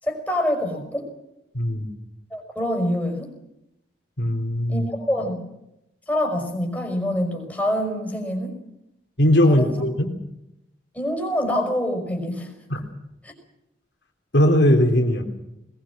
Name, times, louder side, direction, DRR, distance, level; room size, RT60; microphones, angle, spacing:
voice 1, 0.0-1.1 2.3-3.3 4.7-5.4 6.1-8.5 9.5-9.8 10.9-12.5 13.2-13.3, left 1 dB, 10° left, 1 dB, 5.5 m, -26 dB
voice 2, 1.5-1.9 4.2-4.9 9.2-10.1 12.7-12.8 14.3-15.2, left 1 dB, 75° left, 3 dB, 3.4 m, -19 dB
21.0 x 21.0 x 7.4 m, 0.86 s
head